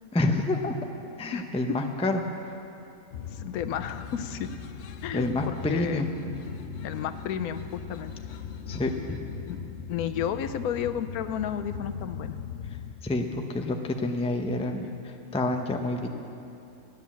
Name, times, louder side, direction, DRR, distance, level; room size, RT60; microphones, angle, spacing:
voice 1, 0.1-0.7 1.2-2.2 5.1-6.1 8.7-9.2 13.0-16.1, left 2 dB, 5° left, 4 dB, 0.4 m, -28 dB
sound 1, 3.1-12.9, left 7 dB, 60° left, 0.8 m, -39 dB
voice 2, 3.3-4.5 5.0-6.1 6.8-8.1 9.5-9.6 9.9-12.4, left 9 dB, 85° left, 10 dB, 1.1 m, -32 dB
13.5 x 10.0 x 7.3 m, 2.7 s
omnidirectional pair, 1.5 m